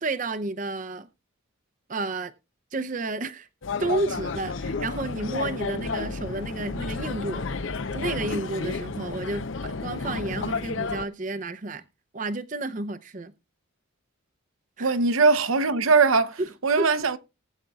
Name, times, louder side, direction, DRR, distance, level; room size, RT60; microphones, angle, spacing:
voice 1, 0.0-1.1 1.9-2.3 2.7-3.5 3.8-7.7 7.9-11.8 12.1-13.3 14.8-14.9 16.4-16.5 16.8-16.9, right 2 dB, 40° right, 0.6 m, -31 dB
sound 1, 3.6-11.0, left 4 dB, 65° left, 0.7 m, -31 dB
voice 2, 14.8-17.2, right 4 dB, 80° right, 0.8 m, -21 dB
19.5 x 8.2 x 2.4 m
head